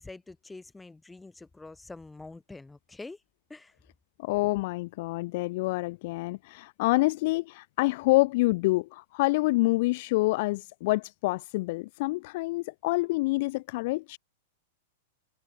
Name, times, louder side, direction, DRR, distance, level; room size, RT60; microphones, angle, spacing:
voice 1, 0.0-3.2 3.5-3.8, left 3 dB, 5° left, 3.6 m, -45 dB
voice 2, 4.2-14.2, left 21 dB, 55° left, 0.6 m, -27 dB
supercardioid pair, 140°, 0 cm